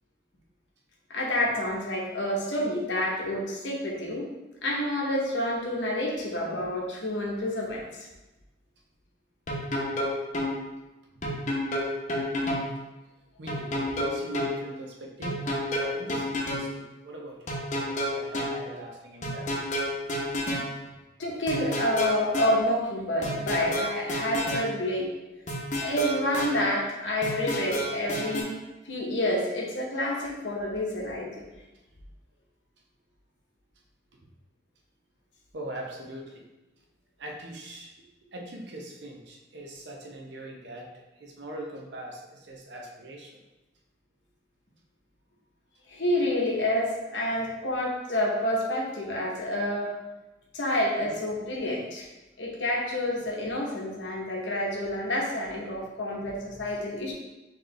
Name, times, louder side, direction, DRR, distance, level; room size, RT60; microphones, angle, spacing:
voice 1, 1.1-4.3 4.6-7.8 21.2-25.1 25.7-28.5 28.9-31.4 45.9-49.9 50.5-52.1 52.4-57.1, left 1 dB, 75° left, -2 dB, 0.9 m, -28 dB
sound 1, 9.5-10.5 11.2-12.7 13.5-14.5 15.2-16.7 17.5-18.6 19.2-20.7 21.5-22.6 23.2-24.7 25.5-26.6 27.2-28.4, equal, 40° left, 0.8 m, -30 dB
voice 2, 13.4-19.5 35.5-36.4 37.2-37.9 38.3-40.9 41.2-43.4 47.2-47.3, right 1 dB, 70° right, 0 dB, 0.7 m, -41 dB
4.5 x 3.1 x 3.2 m, 1.1 s
head